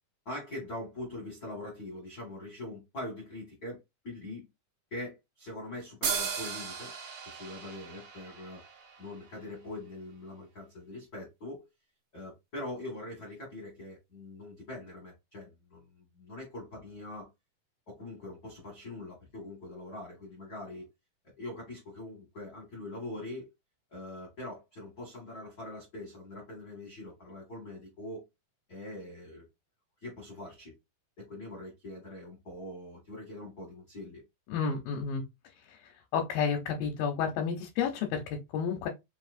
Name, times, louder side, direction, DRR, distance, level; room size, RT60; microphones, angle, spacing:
voice 1, 0.2-4.5 4.9-6.9 7.2-8.6 9.0-11.6 12.1-17.3 17.9-20.9 21.4-23.5 23.9-28.2 28.7-29.4 30.0-30.8 31.2-34.2, left 1 dB, 45° left, 1.2 m, -43 dB
sound 1, 6.0-9.6, right 6 dB, 65° right, 2.1 m, -37 dB
voice 2, 34.5-35.2 35.7-35.8 36.1-38.9, left 6 dB, 80° left, 2.5 m, -31 dB
5.6 x 2.9 x 2.5 m
omnidirectional pair, 4.2 m